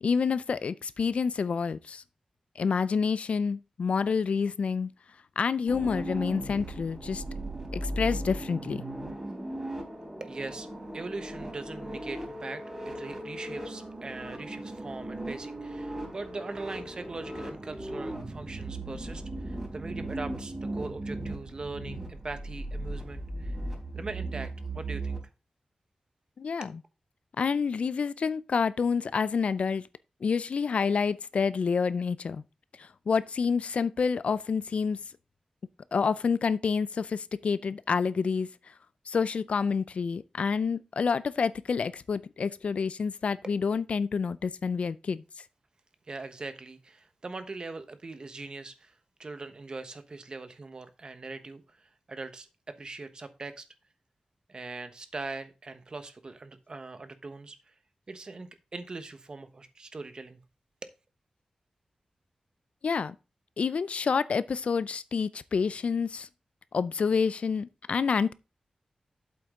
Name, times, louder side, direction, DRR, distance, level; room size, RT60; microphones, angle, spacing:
voice 1, 0.0-2.0 2.6-4.9 5.4-7.2 7.7-8.8 26.4-26.8 27.4-29.8 30.2-32.4 32.8-35.0 35.9-38.7 39.1-45.2 62.8-63.2 63.6-66.3 66.7-68.3, left 5 dB, 65° left, 0.4 m, -28 dB
sound 1, 5.7-25.2, right 1 dB, 25° right, 4.1 m, -37 dB
voice 2, 10.2-10.7 10.9-12.6 12.9-23.6 23.9-25.2 26.6-26.7 46.1-53.6 54.5-57.7 58.1-60.4 60.8-60.9, right 3 dB, 40° right, 1.1 m, -41 dB
8.2 x 7.9 x 3.7 m
wide cardioid pair, 140°, 2 cm